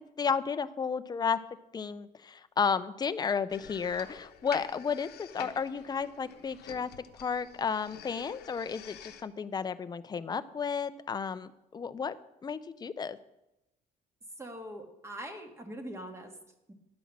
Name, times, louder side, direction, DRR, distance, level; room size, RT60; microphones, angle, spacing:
voice 1, 0.0-1.4 1.7-12.2 12.4-13.2, left 6 dB, 25° left, 13 dB, 0.5 m, -33 dB
sound 1, 3.5-9.2, left 9 dB, 70° left, 0.9 m, -47 dB
voice 2, 14.4-16.3 16.7-16.8, equal, 15° right, 4 dB, 1.6 m, -42 dB
10.5 x 5.6 x 7.3 m, 0.91 s
cardioid pair, 110°, 17 cm